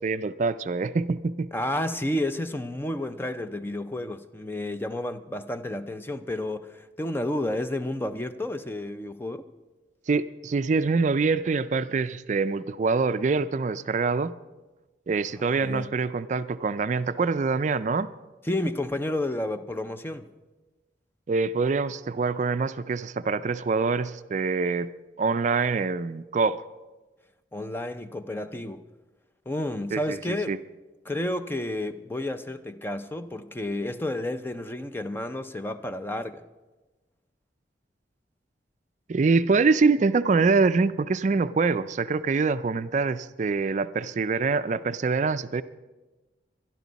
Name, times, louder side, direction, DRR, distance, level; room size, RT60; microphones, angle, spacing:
voice 1, 0.0-1.5 10.1-14.3 15.1-18.1 21.3-24.9 25.2-26.6 29.9-30.2 30.5-30.6 39.1-45.6, right 4 dB, 40° right, 0.4 m, -25 dB
voice 2, 1.5-9.5 15.4-15.9 18.4-20.3 27.5-28.8 29.5-30.6 31.0-36.4, left 1 dB, 10° left, 0.5 m, -31 dB
24.0 x 11.5 x 4.1 m
head